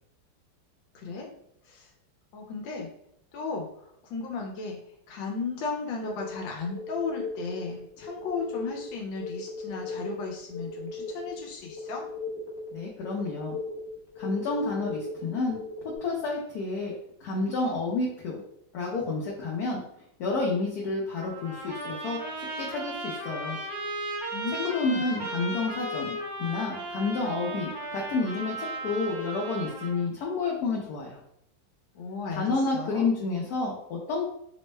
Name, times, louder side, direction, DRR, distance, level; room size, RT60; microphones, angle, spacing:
voice 1, 0.9-1.3 1.7-1.9 2.3-2.9 3.3-3.7 4.1-4.8 5.1-12.0 24.3-25.0 31.9-33.1, left 4 dB, 85° left, 0 dB, 1.4 m, -35 dB
sound 1, 6.0-16.0, left 3 dB, 30° left, 0.4 m, -38 dB
voice 2, 12.7-13.6 14.2-15.6 16.0-16.9 17.2-18.4 18.7-19.8 20.2-23.6 24.7-31.2 32.4-34.2, left 3 dB, 65° left, -3 dB, 1.0 m, -30 dB
Trumpet, 21.2-30.1, right 2 dB, 55° right, 1.3 m, -36 dB
3.5 x 2.1 x 3.1 m, 0.74 s
omnidirectional pair, 2.1 m